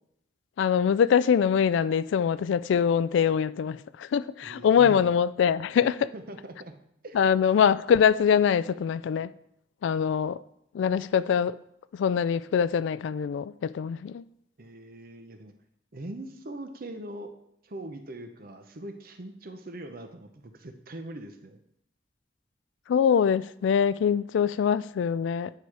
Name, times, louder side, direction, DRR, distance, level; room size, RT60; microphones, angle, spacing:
voice 1, 0.6-6.1 7.1-9.3 9.8-10.4 10.7-11.5 11.9-14.2 22.9-25.5, left 7 dB, 75° left, 0.3 m, -23 dB
voice 2, 4.4-5.0 6.1-6.7 7.0-7.2 14.6-15.5 15.9-17.3 17.6-21.6, right 1 dB, 50° right, 0.8 m, -41 dB
9.4 x 4.7 x 4.8 m
head